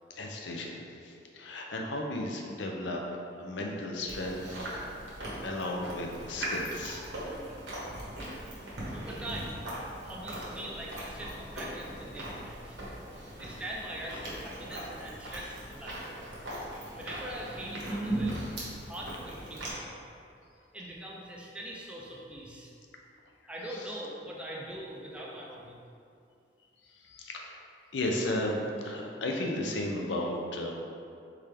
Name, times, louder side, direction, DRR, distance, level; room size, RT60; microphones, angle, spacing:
voice 1, 0.2-4.4 5.4-7.1 26.9-27.6 27.9-28.6 28.8-30.7, left 1 dB, 80° left, 1 dB, 0.6 m, -34 dB
Chewing mastication, 4.1-19.7, right 1 dB, 80° right, 1.2 m, -39 dB
voice 2, 8.9-9.6 10.0-12.8 13.4-16.0 16.7-18.4 18.9-19.9 20.7-22.7 23.5-25.8, right 1 dB, 5° right, -4 dB, 0.4 m, -42 dB
4.3 x 3.7 x 3.4 m, 2.5 s
head